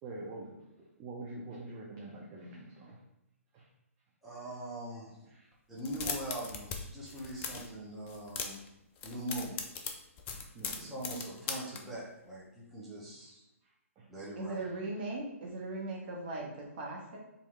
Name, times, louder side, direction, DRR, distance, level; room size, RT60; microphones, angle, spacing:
voice 1, 0.0-3.0 3.5-3.7 5.3-5.5 7.1-7.3 10.2-11.0 13.6-14.1 14.6-14.7, right 2 dB, 20° right, -4 dB, 0.6 m, -46 dB
voice 2, 4.2-5.2 5.7-8.6 9.0-9.6 10.3-10.4 10.8-13.4 14.1-14.6, right 1 dB, ahead, -9 dB, 1.0 m, -42 dB
sound 1, 5.8-6.8 7.0-7.7 8.1-8.7 9.0-11.8, left 6 dB, 20° left, 0.4 m, -38 dB
voice 3, 14.4-17.2, right 2 dB, 40° right, -3 dB, 1.3 m, -39 dB
4.5 x 2.8 x 3.4 m, 0.90 s
figure-of-eight pair, 135°, 8 cm